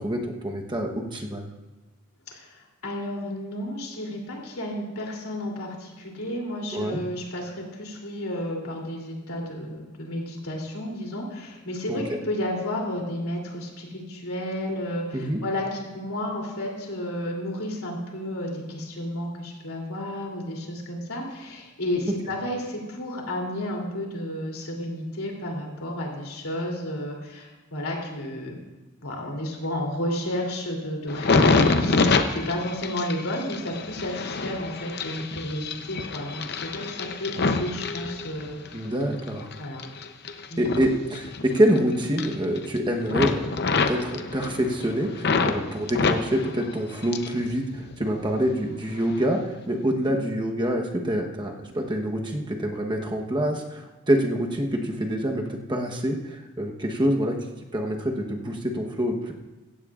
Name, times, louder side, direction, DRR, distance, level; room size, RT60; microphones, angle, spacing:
voice 1, 0.0-1.5 6.7-7.0 11.9-12.2 15.1-15.4 22.1-22.2 38.7-39.5 40.6-57.4 57.7-59.3, equal, 20° right, 1 dB, 1.1 m, -26 dB
voice 2, 2.3-28.6 29.0-38.6 39.6-39.8 40.5-40.7 50.0-50.1, left 1 dB, 80° left, -1 dB, 3.1 m, -32 dB
sound 1, 31.1-38.7 39.2-41.8 42.0-42.8 43.1-45.6 45.9-47.4 47.7-48.5 49.0-49.2, left 4 dB, 50° left, 0.7 m, -26 dB
16.0 x 15.0 x 2.5 m, 1.1 s
head